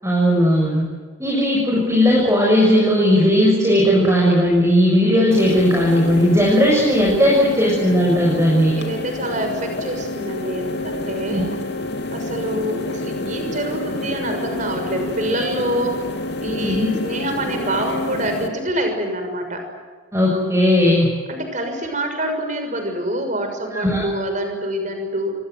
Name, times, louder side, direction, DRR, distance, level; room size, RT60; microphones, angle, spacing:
voice 1, 0.0-0.8 1.2-8.7 11.3-11.4 16.6-17.0 20.1-21.1 23.7-24.0, equal, 15° right, -3 dB, 6.8 m, -16 dB
sound 1, 5.3-18.5, left 2 dB, 55° left, 3.0 m, -28 dB
voice 2, 8.8-11.5 12.1-16.0 16.4-19.6 21.3-25.3, right 1 dB, 40° right, 5 dB, 6.4 m, -26 dB
27.0 x 25.0 x 8.0 m, 1.5 s
head